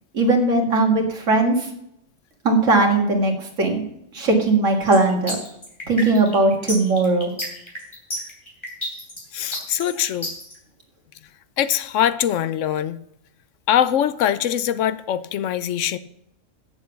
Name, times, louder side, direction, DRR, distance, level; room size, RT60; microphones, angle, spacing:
voice 1, 0.1-1.7 2.4-3.8 4.1-5.4 5.9-7.3, right 2 dB, 75° right, 2 dB, 2.3 m, -19 dB
sound 1, 4.9-10.5, equal, 20° left, 3.2 m, -31 dB
voice 2, 9.3-10.3 11.6-13.0 13.7-16.0, left 10 dB, 80° left, 15 dB, 0.9 m, -22 dB
8.9 x 7.2 x 6.9 m, 0.76 s
omnidirectional pair, 1.3 m